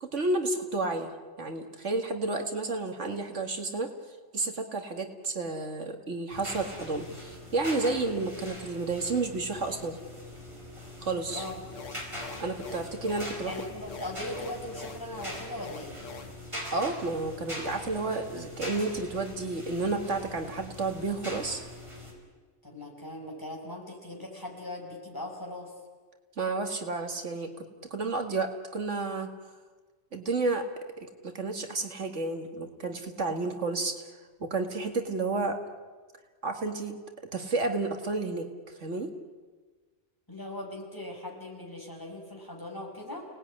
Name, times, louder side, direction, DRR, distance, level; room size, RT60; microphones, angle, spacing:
voice 1, 0.0-1.1 1.4-3.9 4.3-10.0 11.0-11.4 12.4-13.5 16.7-21.6 26.4-29.3 30.1-30.7 31.0-34.1 34.4-35.6 36.4-37.0 37.3-38.5 38.8-39.1, right 3 dB, 70° right, 6 dB, 2.2 m, -31 dB
sound 1, 6.3-22.1, left 1 dB, 25° right, 5.5 m, -42 dB
sound 2, 11.2-16.3, left 5 dB, 80° left, 1.9 m, -45 dB
voice 2, 13.5-15.9 22.6-25.7 40.3-43.3, left 1 dB, 15° left, 0 dB, 5.8 m, -39 dB
30.0 x 19.0 x 9.8 m, 1.4 s
omnidirectional pair, 1.3 m